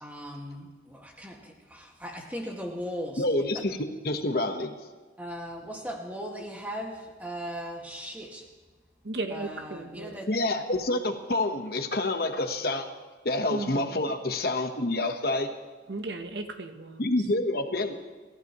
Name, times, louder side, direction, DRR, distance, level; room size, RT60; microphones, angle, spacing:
voice 1, 0.0-3.3 5.2-8.5 9.3-10.3, equal, 10° right, 0 dB, 1.9 m, -38 dB
voice 2, 3.2-4.7 10.3-12.9 13.2-15.5 17.0-17.9, left 2 dB, 55° left, 6 dB, 1.2 m, -28 dB
voice 3, 9.0-10.1 13.5-14.0 15.9-17.0, right 2 dB, 70° right, 7 dB, 1.0 m, -35 dB
29.0 x 15.0 x 3.1 m, 1.3 s
head